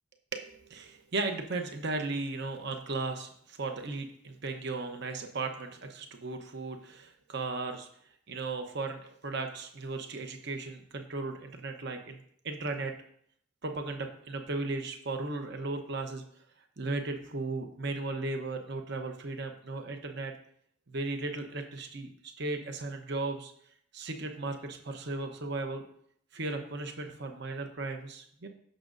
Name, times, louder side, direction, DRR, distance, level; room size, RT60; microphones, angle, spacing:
voice 1, 0.3-7.9 8.3-12.2 12.4-12.9 13.6-16.3 16.8-20.3 20.9-23.5 23.9-25.8 26.3-28.5, right 3 dB, 55° right, 5 dB, 0.9 m, -36 dB
15.5 x 6.3 x 2.6 m, 0.66 s
head